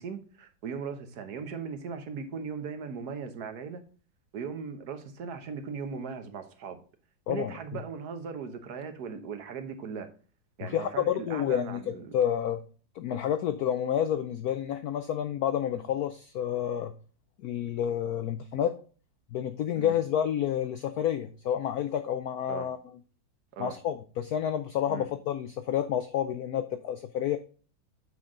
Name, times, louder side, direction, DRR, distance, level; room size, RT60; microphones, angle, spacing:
voice 1, 0.0-3.8 4.3-6.8 7.3-10.1 10.6-12.1 19.7-19.9 22.5-22.7 23.6-23.8 24.9-25.0, right 6 dB, 55° right, 1.4 m, -38 dB
voice 2, 10.6-12.6 13.0-16.9 17.4-18.8 19.3-22.8 23.6-27.4, left 10 dB, 90° left, 0.8 m, -29 dB
7.8 x 5.7 x 3.7 m
omnidirectional pair, 2.2 m